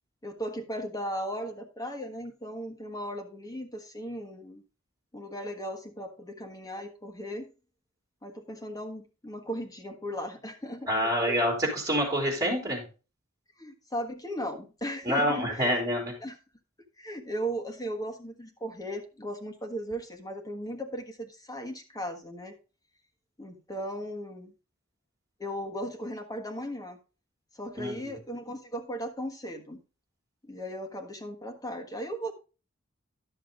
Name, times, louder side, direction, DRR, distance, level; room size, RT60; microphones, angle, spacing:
voice 1, 0.2-4.6 5.1-7.5 8.2-10.9 11.3-11.5 13.6-15.8 16.2-16.3 17.0-22.6 23.4-24.5 25.4-27.0 27.5-29.8 30.4-32.3, equal, 20° left, 3 dB, 1.4 m, -37 dB
voice 2, 10.9-12.8 15.0-16.1 27.8-28.1, equal, 20° right, 0 dB, 3.3 m, -27 dB
11.0 x 6.6 x 3.8 m, 0.33 s
head